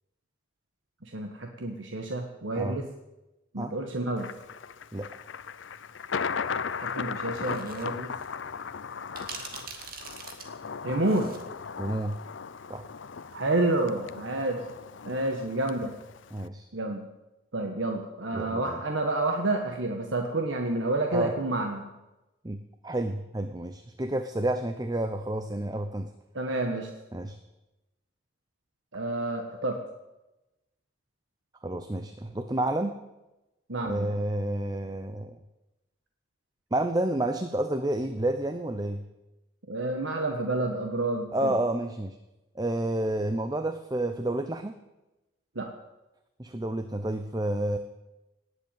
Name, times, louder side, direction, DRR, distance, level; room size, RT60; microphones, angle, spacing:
voice 1, 1.0-2.8 3.5-4.3 6.8-8.1 10.8-11.3 13.3-14.6 15.0-15.9 16.7-17.1 17.5-21.9 26.3-26.9 28.9-29.8 33.7-34.2 39.7-41.6 45.5-45.7, right 2 dB, 90° right, 3 dB, 1.5 m, -29 dB
Thunder, 4.2-16.5, left 6 dB, 90° left, 0.6 m, -37 dB
sound 1, 7.3-7.8 8.2-8.3 9.2-11.5, right 5 dB, 50° right, 2.3 m, -42 dB
voice 2, 11.8-12.2 12.7-12.8 16.3-16.7 18.3-18.8 21.1-21.3 22.4-26.1 27.1-27.4 31.6-33.0 33.9-35.4 36.7-39.0 41.3-42.2 42.5-44.8 46.4-47.8, right 1 dB, 20° right, 8 dB, 0.7 m, -30 dB
18.5 x 8.1 x 9.1 m, 1.0 s
head